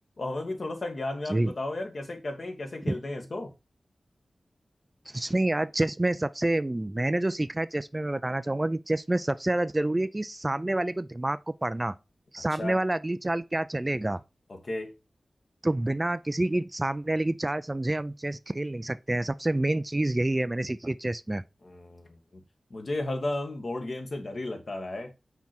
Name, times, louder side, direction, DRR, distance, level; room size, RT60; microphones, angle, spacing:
voice 1, 0.2-3.5 12.5-12.8 14.6-14.9 21.6-22.2 22.7-25.1, left 2 dB, 60° left, 1.7 m, -34 dB
voice 2, 5.1-11.9 12.3-14.2 15.6-21.4, right 1 dB, 25° right, 0.4 m, -28 dB
5.9 x 4.5 x 4.3 m
wide cardioid pair, 60°, 0 cm